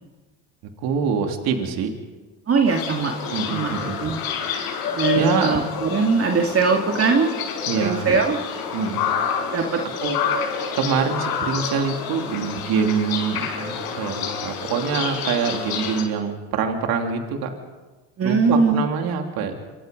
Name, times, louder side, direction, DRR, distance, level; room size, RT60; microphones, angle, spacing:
voice 1, 0.8-1.9 3.3-4.0 5.1-5.5 7.7-8.1 8.7-9.1 10.0-10.2 10.7-17.5 18.2-19.5, right 6 dB, 70° right, 3 dB, 3.3 m, -25 dB
voice 2, 2.5-3.1 3.5-3.7 4.0-4.2 4.9-7.3 7.8-8.4 9.5-9.8 18.2-18.8, right 5 dB, 40° right, 2 dB, 2.4 m, -20 dB
sound 1, 2.7-16.0, left 6 dB, 70° left, 5.8 m, -28 dB
26.5 x 26.0 x 5.4 m, 1.2 s
supercardioid pair, 85°, 37 cm